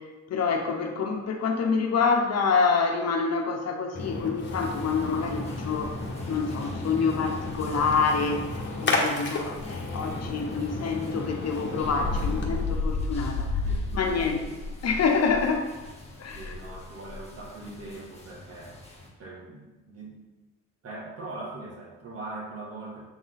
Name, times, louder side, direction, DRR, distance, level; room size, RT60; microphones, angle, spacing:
voice 1, 0.0-6.0 6.3-13.7 13.9-14.4 14.8-15.7 16.2-16.8, left 5 dB, 55° left, 3 dB, 1.1 m, -27 dB
Splash splatter, 3.9-12.6, left 2 dB, 40° left, 1.4 m, -33 dB
sound 1, 4.6-19.1, left 3 dB, 20° left, 1.7 m, -36 dB
voice 2, 14.1-14.6 16.3-18.7 19.2-20.1 20.8-23.0, right 2 dB, 50° right, -4 dB, 2.2 m, -41 dB
7.9 x 3.8 x 4.1 m, 1.2 s
cardioid pair, 90°, 30 cm